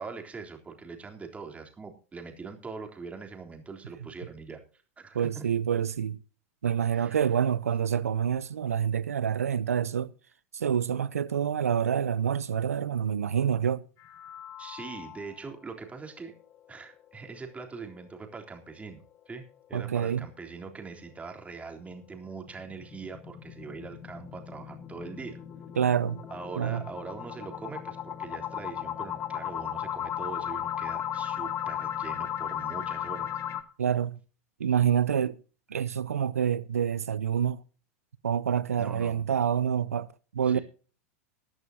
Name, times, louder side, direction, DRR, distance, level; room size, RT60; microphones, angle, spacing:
voice 1, 0.0-4.6 5.0-5.5 6.9-7.3 14.6-16.3 16.7-19.4 19.7-25.4 26.3-33.3 38.8-39.3 40.4-40.6, right 4 dB, 15° right, 3.6 m, -42 dB
voice 2, 5.1-6.2 6.6-10.1 10.5-13.8 19.7-20.3 25.8-26.2 26.6-26.8 33.8-34.2 34.6-35.4 35.7-37.6 38.2-40.1 40.3-40.6, right 8 dB, 80° right, 0.8 m, -27 dB
sound 1, 14.0-15.5 15.9-16.0 16.4-16.5 16.9-17.0 21.8-33.6, left 10 dB, 40° left, 1.8 m, -36 dB
21.5 x 11.0 x 2.8 m
hypercardioid pair, 90°, 8 cm